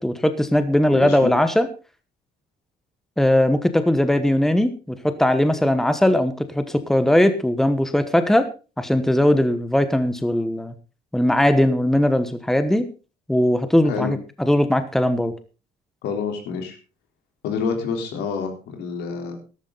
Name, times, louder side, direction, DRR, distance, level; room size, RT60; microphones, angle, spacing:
voice 1, 0.0-1.7 3.2-8.5 8.8-10.7 11.1-12.9 13.3-15.3, left 1 dB, ahead, 10 dB, 1.1 m, -19 dB
voice 2, 0.9-1.3 13.8-14.1 16.0-16.8 17.4-19.4, left 6 dB, 80° left, 4 dB, 3.8 m, -27 dB
13.0 x 12.5 x 4.0 m, 0.33 s
cardioid pair, 110°, 17 cm